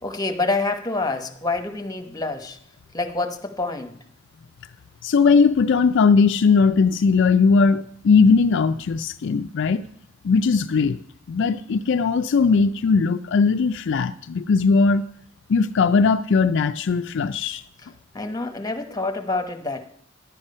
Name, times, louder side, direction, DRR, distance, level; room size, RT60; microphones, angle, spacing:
voice 1, 0.0-2.6 2.9-3.9 18.1-19.8, left 3 dB, 20° left, 1.0 m, -27 dB
voice 2, 5.0-9.8 10.2-11.0 11.3-15.0 15.5-17.6, left 5 dB, 60° left, 0.4 m, -19 dB
11.5 x 8.9 x 5.4 m
head